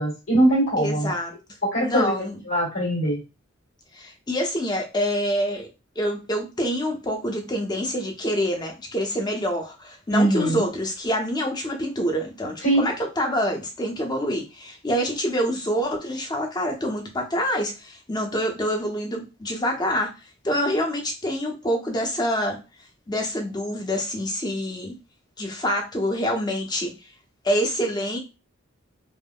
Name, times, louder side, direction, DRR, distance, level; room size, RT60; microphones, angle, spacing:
voice 1, 0.0-1.1 1.6-3.2 10.1-10.6 12.6-12.9, right 1 dB, 85° left, -6 dB, 1.5 m, -22 dB
voice 2, 0.8-1.3 1.8-2.4 3.9-5.7 6.0-20.1 20.4-22.6 23.1-24.9 25.4-26.9 27.4-28.2, equal, 20° left, 2 dB, 0.6 m, -26 dB
3.5 x 2.0 x 2.2 m, 0.28 s
head